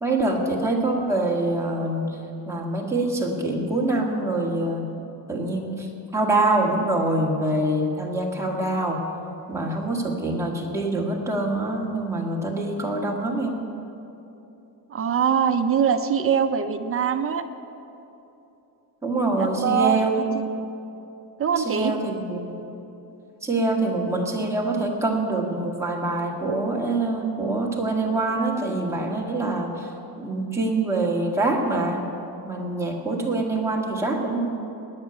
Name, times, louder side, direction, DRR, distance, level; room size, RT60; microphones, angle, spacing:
voice 1, 0.0-2.1 2.5-4.9 5.3-5.9 6.1-9.0 9.5-13.6 19.0-20.2 21.6-22.6 23.4-29.9 30.2-32.0 32.5-34.4, right 2 dB, 5° right, -3 dB, 1.9 m, -25 dB
voice 2, 14.9-17.4 19.4-20.4 21.4-21.9, right 7 dB, 35° right, 8 dB, 0.7 m, -23 dB
19.5 x 6.6 x 9.6 m, 2.9 s
cardioid pair, 175°, 42 cm